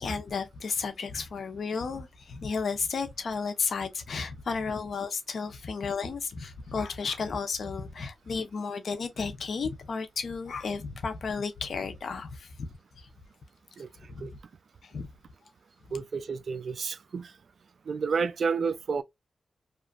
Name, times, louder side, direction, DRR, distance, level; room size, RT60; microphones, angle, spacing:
voice 1, 0.0-12.7 13.0-13.1 14.1-14.4 14.8-15.1, left 5 dB, 65° left, 0.7 m, -33 dB
voice 2, 15.9-17.3 17.9-19.0, right 5 dB, 65° right, 0.3 m, -30 dB
2.9 x 2.3 x 2.3 m
cardioid pair, 65°, 0 cm